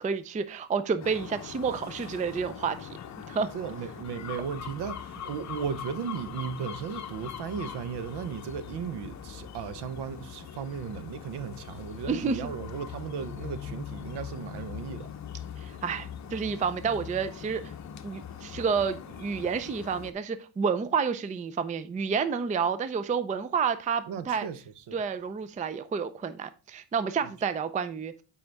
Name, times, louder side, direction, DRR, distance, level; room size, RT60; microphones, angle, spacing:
voice 1, 0.0-3.0 3.3-3.5 12.1-12.5 15.6-17.7 18.0-24.5 24.9-28.1, right 6 dB, 20° right, 0.4 m, -30 dB
sound 1, 1.0-20.1, left 8 dB, 40° left, 0.8 m, -41 dB
voice 2, 3.5-15.1 24.1-25.0 27.2-27.3, right 7 dB, 60° right, 0.9 m, -36 dB
7.9 x 4.9 x 3.4 m
cardioid pair, 110°, 46 cm